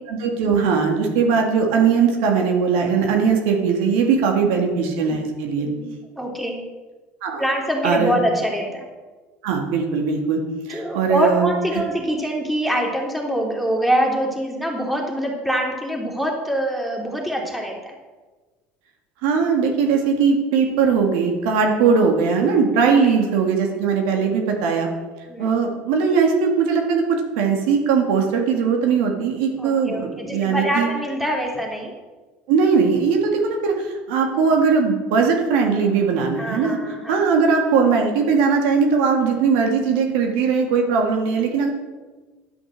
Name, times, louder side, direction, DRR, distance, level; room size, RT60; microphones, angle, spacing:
voice 1, 0.1-5.7 7.2-7.4 7.8-8.2 9.4-10.4 10.7-11.5 19.2-24.9 25.4-30.9 32.5-36.8 37.1-41.7, right 5 dB, 80° right, 2 dB, 1.9 m, -19 dB
voice 2, 5.5-5.9 6.2-6.6 7.4-8.9 10.7-18.0 22.7-23.2 25.3-25.5 29.6-31.9 36.4-37.2, equal, ahead, -1 dB, 3.0 m, -25 dB
11.0 x 6.3 x 6.4 m, 1.3 s
supercardioid pair, 90°, 6 cm